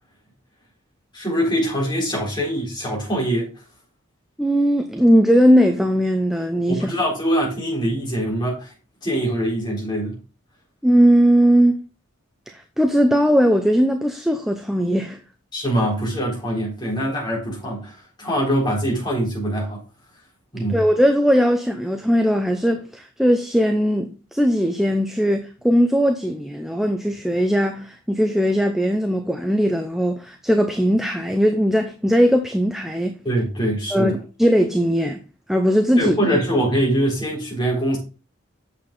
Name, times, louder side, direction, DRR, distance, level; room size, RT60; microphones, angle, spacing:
voice 1, 1.1-3.5 6.7-8.7 9.0-10.2 15.5-19.8 20.5-20.8 33.2-34.2 36.0-38.0, equal, 20° left, 3.9 m, -23 dB
voice 2, 4.4-6.9 10.8-11.8 12.5-15.2 20.7-33.2 33.9-35.2 35.5-36.2, equal, ahead, 0.6 m, -19 dB
8.6 x 6.9 x 3.8 m
head